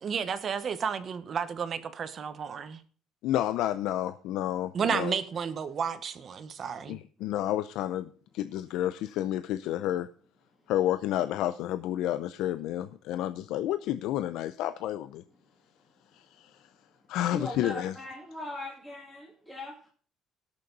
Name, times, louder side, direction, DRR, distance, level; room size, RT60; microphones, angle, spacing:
voice 1, 0.0-2.8 4.7-7.0, right 6 dB, 35° right, 1.1 m, -32 dB
voice 2, 3.2-5.1 6.9-10.1 10.7-15.2 16.1-16.6 17.1-17.9, left 12 dB, 75° left, 0.5 m, -30 dB
voice 3, 17.2-19.9, left 1 dB, 5° left, 2.4 m, -40 dB
17.5 x 6.8 x 3.9 m
cardioid pair, 160°, 0 cm